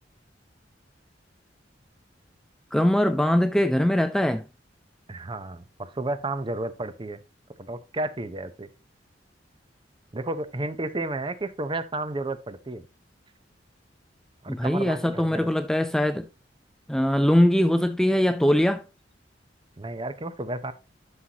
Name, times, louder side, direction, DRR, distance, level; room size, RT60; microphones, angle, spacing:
voice 1, 2.7-4.4 14.5-16.3 16.9-18.8, left 1 dB, 5° left, 0.4 m, -22 dB
voice 2, 5.1-7.2 7.6-8.7 10.1-12.9 14.4-15.5 19.8-20.7, right 2 dB, 30° right, 0.7 m, -32 dB
11.5 x 5.7 x 2.8 m
head